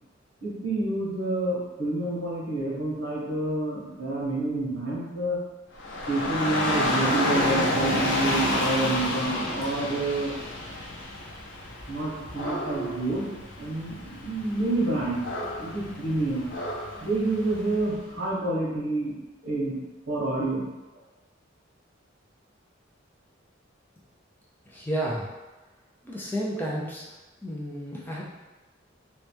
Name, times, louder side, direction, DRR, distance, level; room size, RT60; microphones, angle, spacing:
voice 1, 0.4-5.4 6.1-10.3 11.9-13.2 13.6-15.2 15.6-16.5 17.0-19.1 19.4-19.7 20.1-20.7, right 2 dB, 60° right, -6 dB, 1.4 m, -28 dB
Dog / Rain, 5.8-17.9, left 1 dB, 75° left, 0.7 m, -30 dB
voice 2, 24.7-25.3 26.0-27.1 27.4-28.2, equal, 10° left, -4 dB, 0.5 m, -31 dB
3.1 x 3.1 x 3.3 m, 1.1 s
head